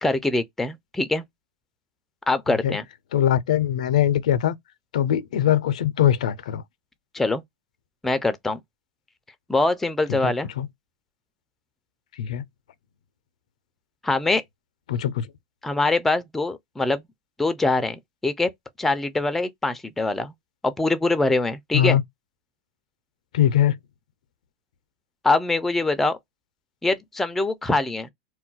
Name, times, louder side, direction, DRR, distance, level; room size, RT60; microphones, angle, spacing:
voice 1, 0.0-1.2 2.3-2.8 7.1-7.4 8.0-8.6 9.5-10.5 14.0-14.4 15.6-17.0 17.4-18.5 18.8-20.3 20.6-22.0 25.2-26.2 26.8-28.1, left 2 dB, 5° left, 0.4 m, -23 dB
voice 2, 3.1-4.5 4.9-6.6 10.1-10.7 12.2-12.4 14.9-15.3 21.7-22.0 23.3-23.8, left 10 dB, 85° left, 0.4 m, -21 dB
2.2 x 2.2 x 3.9 m
supercardioid pair, 140°, 4 cm